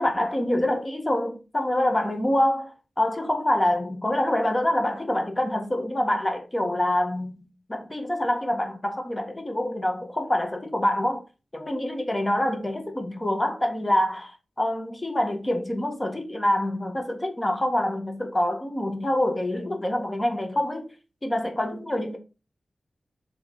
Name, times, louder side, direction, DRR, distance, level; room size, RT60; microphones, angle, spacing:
voice 1, 0.0-11.2 11.5-20.9 21.2-22.2, left 1 dB, 25° left, 1.6 m, -26 dB
7.1 x 3.5 x 5.1 m
wide cardioid pair, 80°, 0 cm